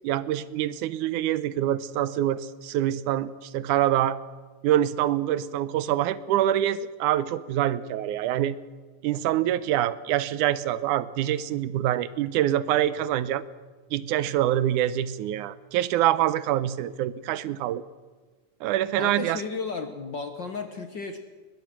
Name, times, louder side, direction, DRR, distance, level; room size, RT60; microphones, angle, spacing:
voice 1, 0.0-4.2 4.6-8.6 9.0-13.4 13.9-17.8 18.6-19.4, right 12 dB, 85° right, 17 dB, 2.2 m, -25 dB
voice 2, 19.0-21.2, left 4 dB, 55° left, 7 dB, 1.4 m, -34 dB
21.5 x 20.0 x 6.1 m, 1.4 s
omnidirectional pair, 3.5 m